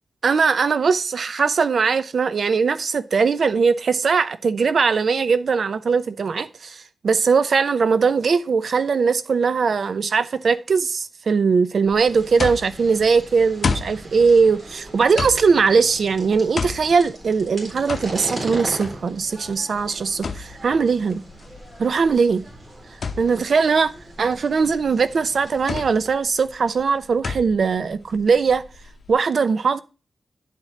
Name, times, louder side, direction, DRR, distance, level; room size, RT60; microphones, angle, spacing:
voice 1, 0.2-21.2 21.8-22.4 23.2-28.6 29.1-29.8, right 5 dB, 70° right, 0.6 m, -20 dB
sound 1, 11.9-29.1, left 5 dB, 65° left, 0.8 m, -33 dB
sound 2, 12.1-26.1, right 1 dB, 40° right, 3.9 m, -39 dB
10.5 x 5.0 x 4.1 m
cardioid pair, 80°, 0 cm